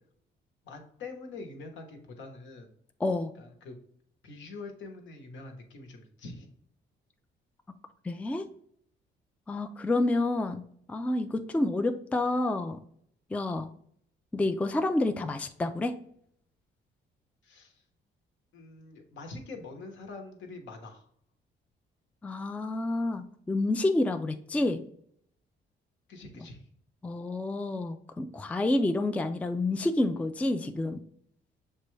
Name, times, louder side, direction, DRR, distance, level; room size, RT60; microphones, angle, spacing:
voice 1, 0.6-2.7 3.4-3.8 4.2-6.5 17.4-17.8 18.5-21.1 26.1-26.6, left 3 dB, 75° left, 3 dB, 1.0 m, -44 dB
voice 2, 3.0-3.3 8.0-8.5 9.5-10.6 10.9-12.8 13.3-13.7 14.3-15.9 22.2-24.8 26.4-26.5 27.0-31.0, left 2 dB, 5° left, 7 dB, 0.3 m, -29 dB
6.5 x 2.2 x 3.1 m, 0.64 s
cardioid pair, 90°, 20 cm